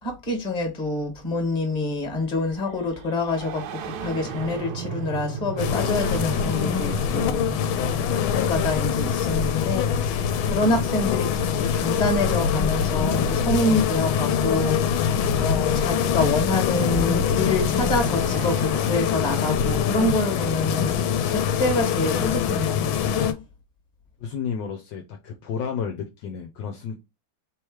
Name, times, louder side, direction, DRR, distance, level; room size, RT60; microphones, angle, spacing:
voice 1, 0.0-7.5 8.1-10.2 10.5-14.8 15.4-21.0 21.3-23.3, left 2 dB, 25° left, 1.4 m, -26 dB
sound 1, 2.3-12.9 14.1-14.2 15.3-19.0, right 6 dB, 80° right, 1.4 m, -38 dB
sound 2, 5.6-23.3, left 7 dB, 85° left, 1.4 m, -24 dB
voice 2, 24.2-27.0, left 6 dB, 70° left, 1.3 m, -31 dB
3.5 x 3.2 x 4.6 m
omnidirectional pair, 2.2 m